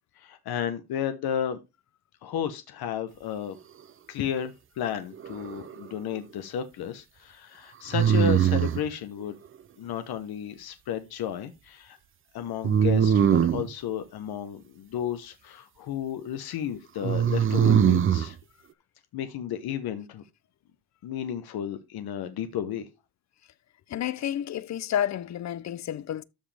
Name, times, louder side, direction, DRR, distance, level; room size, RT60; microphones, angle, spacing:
voice 1, 0.2-1.6 2.2-3.6 4.1-9.4 9.8-12.0 12.3-18.4 19.1-20.2 21.0-22.9, left 9 dB, 80° left, 1.1 m, -33 dB
sound 1, 5.2-5.9 7.9-8.9 12.6-13.7 17.0-18.3, right 8 dB, 35° right, 0.5 m, -22 dB
voice 2, 23.9-26.2, left 10 dB, 50° left, 0.6 m, -30 dB
13.0 x 5.1 x 3.4 m
cardioid pair, 120°, 37 cm